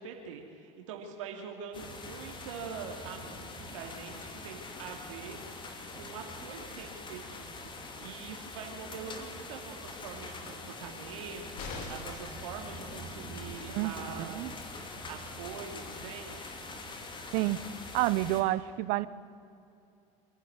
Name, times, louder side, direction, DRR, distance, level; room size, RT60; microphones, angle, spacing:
voice 1, 0.0-5.4 5.9-7.7 8.0-11.4 11.7-14.5 15.1-16.5, right 6 dB, 85° right, 2 dB, 2.7 m, -44 dB
sound 1, 1.7-18.4, left 2 dB, 30° left, 3.0 m, -44 dB
sound 2, 11.6-12.3 14.3-14.4 14.7-14.8, left 3 dB, 60° left, 3.7 m, -41 dB
voice 2, 17.9-19.1, right 17 dB, 60° right, 17 dB, 0.9 m, -28 dB
26.5 x 11.5 x 9.7 m, 2.6 s
supercardioid pair, 95°, 16 cm